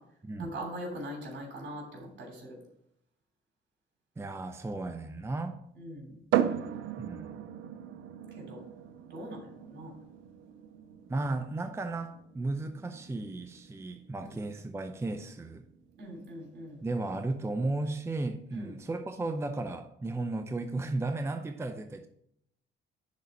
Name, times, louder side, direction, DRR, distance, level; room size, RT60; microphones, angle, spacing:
voice 1, 0.4-2.6 5.7-6.1 8.3-8.6 9.1-9.9 14.2-14.5 16.0-16.8 18.5-18.7, equal, 65° right, 0 dB, 3.1 m, -42 dB
voice 2, 4.2-5.6 7.0-7.4 11.1-15.6 16.8-22.1, right 2 dB, 15° right, 7 dB, 0.5 m, -34 dB
sound 1, 6.3-19.8, right 10 dB, 85° right, 0.5 m, -38 dB
6.7 x 4.0 x 6.4 m, 0.71 s
cardioid pair, 90°, 20 cm